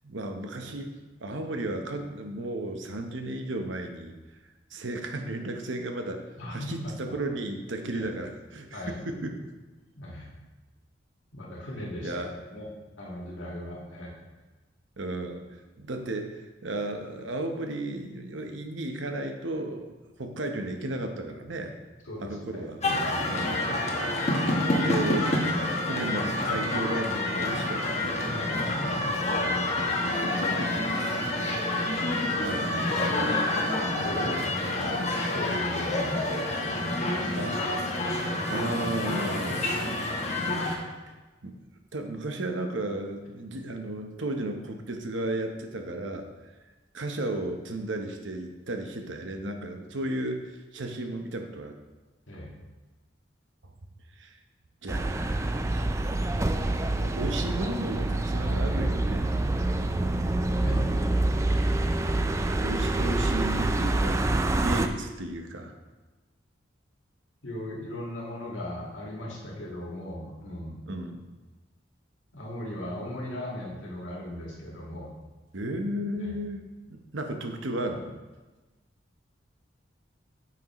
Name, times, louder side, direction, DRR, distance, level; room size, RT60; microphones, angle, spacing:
voice 1, 0.0-4.1 4.7-9.5 12.0-12.3 15.0-19.9 20.2-21.8 22.2-22.8 23.3-23.8 24.3-28.5 29.6-29.9 30.4-30.7 32.0-33.7 34.1-34.5 37.4-37.6 38.5-39.9 40.2-40.4 41.4-41.5 41.9-46.3 46.9-51.7 54.2-54.4 54.8-59.3 62.4-64.2 64.6-65.7 70.9-71.2 75.5-78.2, right 1 dB, 75° right, 5 dB, 0.9 m, -34 dB
voice 2, 6.4-7.2 7.9-8.0 8.7-9.0 10.0-10.3 11.3-12.7 13.0-14.1 22.1-22.7 23.0-23.3 28.2-29.2 29.7-29.9 32.3-33.3 34.0-35.0 35.3-36.4 36.9-37.4 38.1-38.3 52.3-52.5 55.5-55.7 60.6-61.0 67.4-70.8 72.3-75.1 76.2-76.4, left 1 dB, 85° left, -3 dB, 1.8 m, -38 dB
sound 1, 22.8-40.8, left 1 dB, 35° left, 1.0 m, -28 dB
sound 2, 54.9-64.9, right 2 dB, 15° right, 0.3 m, -26 dB
9.1 x 6.0 x 3.0 m, 1.2 s
head